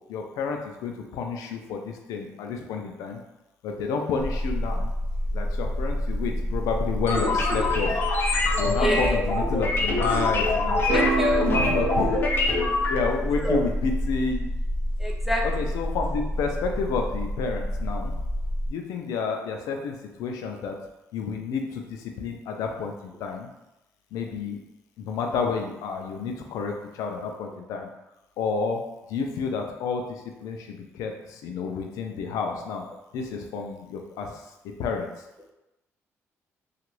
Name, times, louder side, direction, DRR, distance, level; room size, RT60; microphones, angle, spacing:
voice 1, 0.1-3.2 3.6-4.9 5.3-8.0 8.5-11.1 11.5-12.2 12.9-14.5 15.4-18.1 18.7-20.8 21.1-23.5 24.1-24.6 25.0-27.9 28.4-28.8 29.1-32.8 33.1-34.4 34.8-35.1, left 5 dB, 85° left, 3 dB, 0.4 m, -30 dB
sound 1, 4.2-18.7, equal, 25° right, 1.5 m, -29 dB
sound 2, 7.1-13.0, left 3 dB, 40° left, 0.6 m, -25 dB
voice 2, 8.8-9.2 10.7-11.5 13.4-13.6 15.0-15.4, right 1 dB, 5° right, -1 dB, 0.5 m, -27 dB
sound 3, 10.9-13.3, right 7 dB, 90° right, 0.3 m, -30 dB
2.9 x 2.4 x 3.0 m, 0.94 s
cardioid pair, 115°, 6 cm